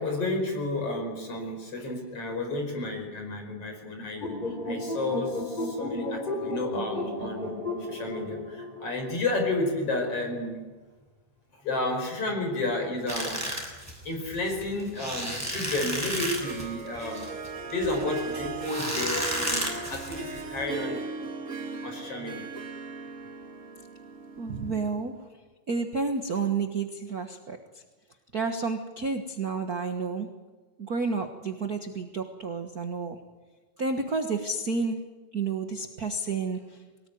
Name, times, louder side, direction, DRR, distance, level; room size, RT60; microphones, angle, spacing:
voice 1, 0.0-7.5 7.8-10.6 11.5-13.5 14.0-17.4 17.7-21.0 21.8-22.5, left 2 dB, 45° left, 3 dB, 5.9 m, -31 dB
sound 1, 4.2-9.6, left 1 dB, 15° left, 3.3 m, -33 dB
sound 2, 13.1-20.6, right 1 dB, 5° right, 6.2 m, -33 dB
Harp, 16.2-25.1, right 3 dB, 30° right, 1.7 m, -38 dB
voice 2, 24.4-25.1 25.7-27.8 28.3-30.3 30.8-33.2 33.8-35.0 35.3-36.8, right 4 dB, 50° right, 5 dB, 1.1 m, -30 dB
23.5 x 19.5 x 9.4 m, 1.3 s
omnidirectional pair, 3.8 m